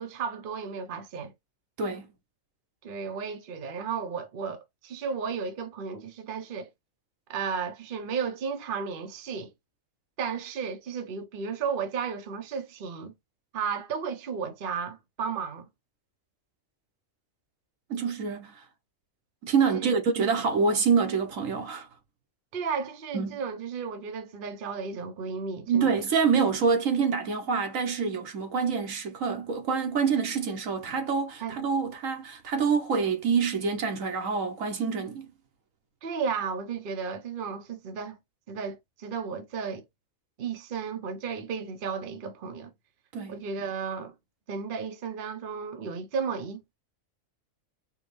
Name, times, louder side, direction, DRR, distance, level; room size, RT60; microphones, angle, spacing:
voice 1, 0.0-1.3 2.8-6.7 7.3-9.5 10.2-13.1 13.5-15.7 19.6-20.0 22.5-25.9 31.4-31.6 36.0-38.2 38.5-39.9 40.4-42.7 43.3-44.1 44.5-46.7, right 6 dB, 45° right, 0.9 m, -34 dB
voice 2, 1.8-2.1 17.9-18.6 19.4-21.9 23.1-23.4 25.7-35.3 43.1-43.4, right 5 dB, 80° right, 1.4 m, -26 dB
4.6 x 2.3 x 3.2 m
omnidirectional pair, 1.4 m